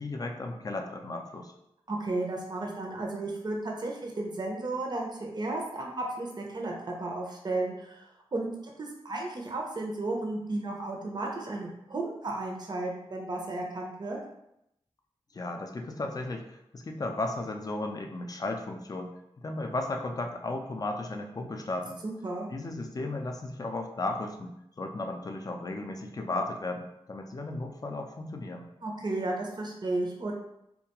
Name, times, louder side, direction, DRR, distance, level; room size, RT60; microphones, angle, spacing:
voice 1, 0.0-1.5 15.3-22.0 22.5-28.7, left 2 dB, 35° left, 4 dB, 0.4 m, -35 dB
voice 2, 1.9-14.2 22.0-22.5 28.8-30.3, right 2 dB, 40° right, 0 dB, 0.5 m, -34 dB
2.3 x 2.2 x 2.9 m, 0.82 s
cardioid pair, 50°, 11 cm